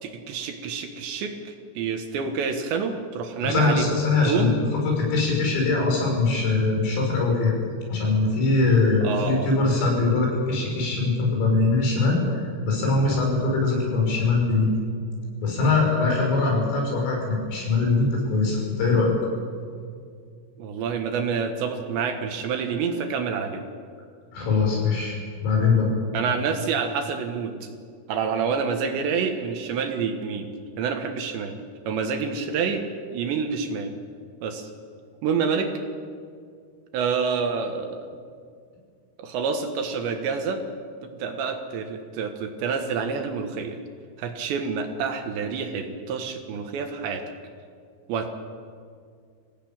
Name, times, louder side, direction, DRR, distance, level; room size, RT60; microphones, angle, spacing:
voice 1, 0.0-4.0 4.3-4.6 9.0-9.5 20.6-23.6 26.1-27.7 28.1-30.5 30.8-31.5 31.9-33.9 34.4-34.7 35.2-35.7 36.9-38.1 39.2-40.6 41.0-43.8 44.2-47.2 48.1-48.3, right 5 dB, 70° right, 5 dB, 3.4 m, -28 dB
voice 2, 3.4-7.5 7.9-14.7 15.4-19.1 24.3-25.2 25.4-25.9, left 3 dB, 80° left, -1 dB, 8.9 m, -22 dB
26.0 x 17.0 x 8.9 m, 2.2 s
omnidirectional pair, 5.9 m